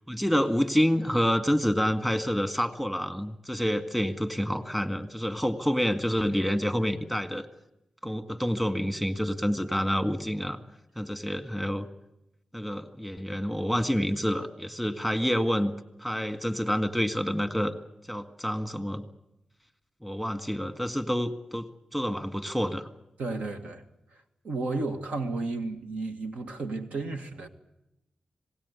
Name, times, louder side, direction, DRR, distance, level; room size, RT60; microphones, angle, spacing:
voice 1, 0.1-7.5 8.0-10.6 11.0-11.9 12.5-15.7 16.0-17.8 18.1-19.0 20.0-22.9, equal, 5° right, 1.9 m, -28 dB
voice 2, 23.2-23.8 24.1-27.5, right 3 dB, 80° right, 2.0 m, -33 dB
26.5 x 18.5 x 8.4 m
cardioid pair, 55°, 2 cm